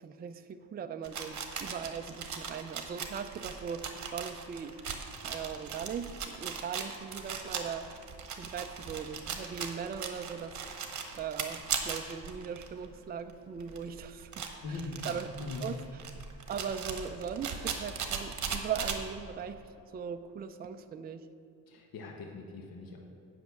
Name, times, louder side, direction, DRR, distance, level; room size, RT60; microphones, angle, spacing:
voice 1, 0.0-4.8 5.2-8.0 8.4-10.6 11.1-15.3 15.6-15.8 16.5-21.3, right 7 dB, 30° right, 8 dB, 0.4 m, -39 dB
sound 1, 1.0-12.9 13.3-13.4 13.6-19.0, right 6 dB, 55° right, 1.1 m, -38 dB
voice 2, 14.6-15.1 15.4-15.7 21.7-23.0, left 3 dB, 75° left, 1 dB, 1.2 m, -41 dB
8.3 x 6.3 x 8.1 m, 2.7 s
wide cardioid pair, 170°, 35 cm